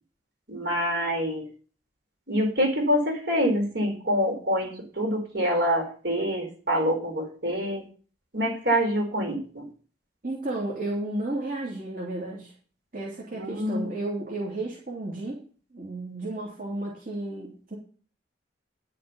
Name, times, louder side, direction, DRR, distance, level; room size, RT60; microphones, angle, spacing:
voice 1, 0.5-1.5 2.3-7.8 8.3-9.7 13.3-13.9, equal, 70° right, 2 dB, 4.3 m, -26 dB
voice 2, 10.2-12.5 12.9-15.4 15.7-17.8, right 2 dB, 50° right, -4 dB, 2.7 m, -33 dB
10.5 x 6.7 x 6.8 m, 0.41 s
head